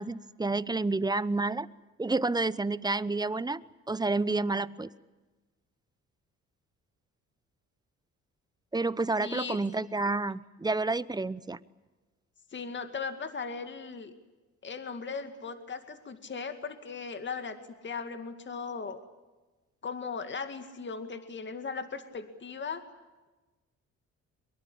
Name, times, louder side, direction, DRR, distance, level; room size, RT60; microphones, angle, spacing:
voice 1, 0.0-1.7 2.0-3.6 3.9-4.9 8.7-11.6, right 3 dB, 15° right, 17 dB, 0.9 m, -29 dB
voice 2, 9.2-9.6 12.5-14.1 14.6-17.6 17.8-19.0 19.8-22.8, left 5 dB, 40° left, 8 dB, 2.3 m, -38 dB
23.0 x 23.0 x 8.6 m, 1.2 s
cardioid pair, 90°, 30 cm